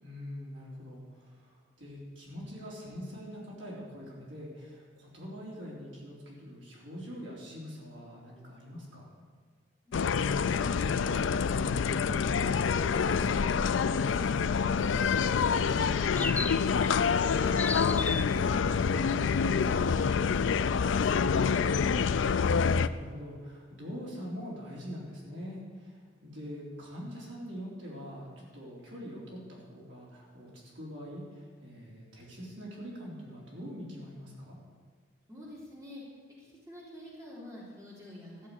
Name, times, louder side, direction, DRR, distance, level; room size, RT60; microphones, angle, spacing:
voice 1, 0.0-9.0 22.5-34.6, equal, 65° right, -5 dB, 3.9 m, -44 dB
sound 1, 9.9-22.9, left 6 dB, 75° left, 0.4 m, -27 dB
voice 2, 9.9-12.5 12.8-15.3 16.4-19.0 19.4-22.0 35.3-36.0 36.4-38.5, equal, 15° right, -6 dB, 3.4 m, -47 dB
sound 2, 16.1-16.9 17.2-18.3, left 3 dB, 10° left, 0.3 m, -35 dB
13.5 x 7.2 x 8.6 m, 1.6 s
head